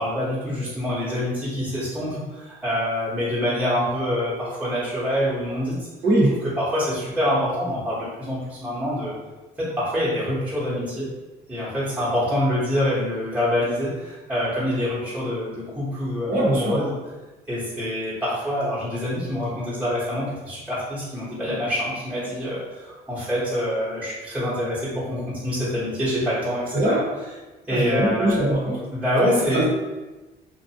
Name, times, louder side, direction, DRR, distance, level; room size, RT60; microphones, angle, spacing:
voice 1, 0.0-5.8 6.4-9.2 9.6-11.1 11.5-16.9 17.5-27.0 27.7-28.5 28.9-29.6, left 1 dB, 10° right, -10 dB, 1.0 m, -26 dB
voice 2, 6.0-6.4 16.3-16.8 26.7-27.1 27.7-28.8 29.5-29.6, right 1 dB, 55° right, -3 dB, 0.9 m, -21 dB
2.6 x 2.2 x 2.7 m, 1.2 s
cardioid pair, 110°, 17 cm